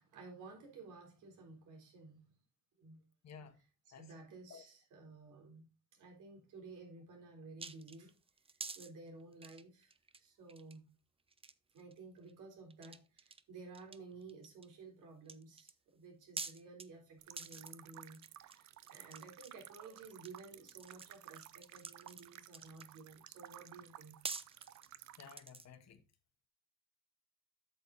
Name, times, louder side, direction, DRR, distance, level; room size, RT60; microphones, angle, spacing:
voice 1, 0.0-2.2 2.8-3.0 3.9-5.6 6.0-8.1 8.8-9.9 10.2-10.9 11.7-24.2, right 3 dB, 85° right, 3.8 m, -54 dB
voice 2, 3.2-3.6 3.9-4.2 4.5-4.6 25.2-26.0, left 6 dB, 60° left, 1.6 m, -54 dB
sound 1, 7.6-8.9 9.3-10.2 10.5-10.8 11.3-12.0 12.3-12.4 12.7-13.4 13.7-14.7 15.3-15.7 16.4-16.9 17.4-17.7 18.1-18.6 18.9-20.4 20.7-22.9 23.8-23.9 24.2-25.7, right 4 dB, 20° right, 0.7 m, -47 dB
sound 2, 17.2-25.4, right 12 dB, 65° right, 0.7 m, -55 dB
8.3 x 6.5 x 4.1 m
cardioid pair, 90°, 30 cm